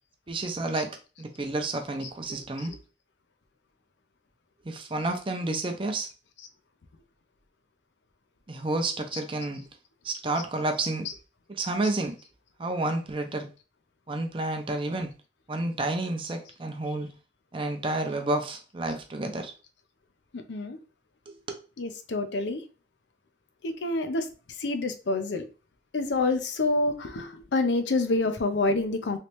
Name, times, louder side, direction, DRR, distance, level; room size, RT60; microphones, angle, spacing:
voice 1, 0.3-2.8 4.6-6.1 8.5-9.7 10.0-11.1 11.5-12.1 12.6-13.5 14.1-15.1 15.5-17.1 17.5-19.5 21.3-21.4, right 2 dB, 30° right, 0.5 m, -30 dB
voice 2, 20.3-20.8 21.8-22.6 23.6-25.5 25.9-29.2, left 2 dB, 80° left, 0.6 m, -28 dB
3.2 x 3.1 x 2.9 m
head